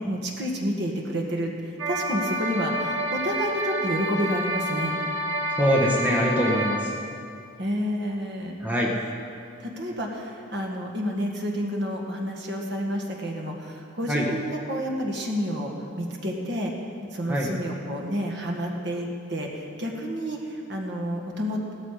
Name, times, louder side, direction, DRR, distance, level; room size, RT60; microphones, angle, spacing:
voice 1, 0.1-5.0 7.6-8.6 9.6-16.9 17.1-21.7, equal, 55° right, 0 dB, 1.9 m, -30 dB
sound 1, 1.8-6.8, right 1 dB, 85° right, 1.3 m, -28 dB
voice 2, 5.5-6.9 8.6-8.9 14.1-14.3 17.3-17.5, equal, 10° right, -3 dB, 1.4 m, -23 dB
16.0 x 13.5 x 5.0 m, 2.5 s
head